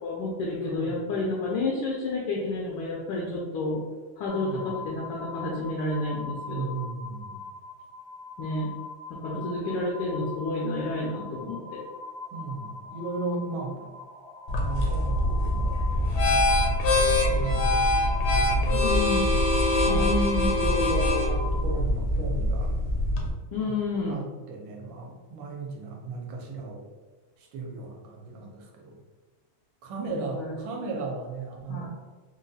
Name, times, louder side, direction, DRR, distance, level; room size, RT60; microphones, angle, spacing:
voice 1, 0.0-3.8 4.2-6.7 8.4-8.7 9.1-11.8 18.7-19.2 19.9-20.6 23.5-24.2 30.1-30.6 31.7-31.9, left 2 dB, 85° left, -3 dB, 1.4 m, -30 dB
voice 2, 0.6-1.0 4.3-4.7 6.5-7.4 9.3-9.4 12.3-13.9 14.6-16.8 17.2-18.0 18.3-19.1 19.8-20.1 20.6-22.7 23.6-23.7 24.1-26.8 27.4-28.9 29.8-31.9, right 3 dB, 75° right, 0 dB, 1.4 m, -36 dB
sound 1, 4.3-21.6, left 3 dB, 60° right, 0.9 m, -41 dB
sound 2, 14.5-23.3, left 1 dB, 70° left, 1.0 m, -24 dB
3.9 x 2.2 x 2.6 m, 1.3 s
omnidirectional pair, 2.2 m